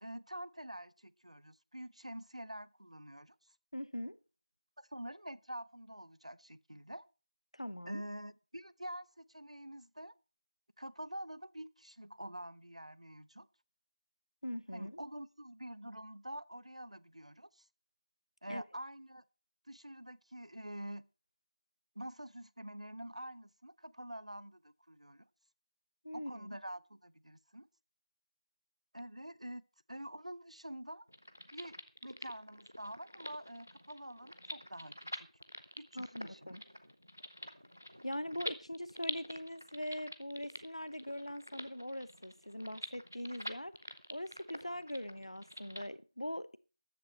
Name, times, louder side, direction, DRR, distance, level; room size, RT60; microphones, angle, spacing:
voice 1, 0.0-3.3 4.8-7.0 7.9-10.1 10.8-13.5 14.7-17.7 18.4-19.2 19.7-21.0 22.0-25.2 26.1-27.7 28.9-29.6 29.9-31.1 31.5-31.8 32.0-35.3 35.8-36.6, right 1 dB, 70° right, 0.8 m, -47 dB
voice 2, 3.7-4.2 7.5-8.0 14.4-15.0 18.5-18.6 26.0-26.6 35.9-36.6 38.0-43.7 44.1-46.6, equal, 60° left, 1.0 m, -42 dB
sound 1, 31.1-45.9, equal, 20° right, 0.5 m, -47 dB
14.0 x 10.5 x 4.4 m
figure-of-eight pair, 180°, 4 cm